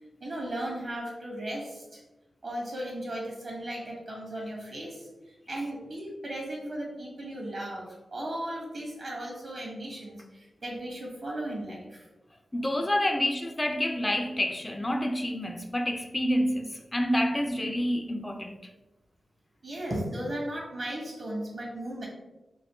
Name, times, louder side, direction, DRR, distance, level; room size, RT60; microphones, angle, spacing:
voice 1, 0.2-2.0 2.4-12.1 19.6-22.1, right 1 dB, 55° right, 1.3 m, -36 dB
voice 2, 12.5-18.6, equal, 20° left, 0.3 m, -28 dB
3.1 x 2.7 x 3.0 m
cardioid pair, 65°, 0 cm